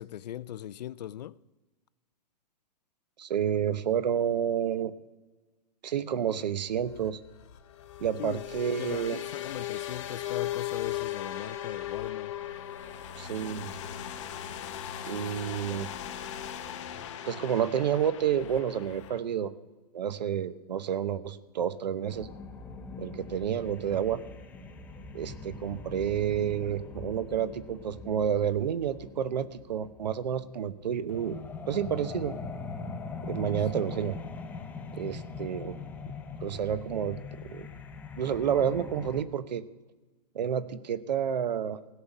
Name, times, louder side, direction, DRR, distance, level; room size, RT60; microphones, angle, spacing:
voice 1, 0.0-1.4 8.2-8.4 8.8-12.3, left 11 dB, 75° left, 0.5 m, -39 dB
voice 2, 3.2-4.9 5.8-7.2 8.0-9.2 13.2-13.7 15.0-15.9 17.2-19.5 19.9-22.3 23.0-24.2 25.1-31.4 31.7-32.3 33.2-34.2 34.9-35.8 36.4-37.2 37.4-37.7 38.2-39.6 40.3-41.8, right 9 dB, 90° right, 0.9 m, -30 dB
sound 1, 6.8-19.2, left 11 dB, 45° left, 1.1 m, -38 dB
sound 2, 22.1-39.2, left 4 dB, 10° left, 0.5 m, -42 dB
16.5 x 5.8 x 9.0 m
hypercardioid pair, 160°, 21 cm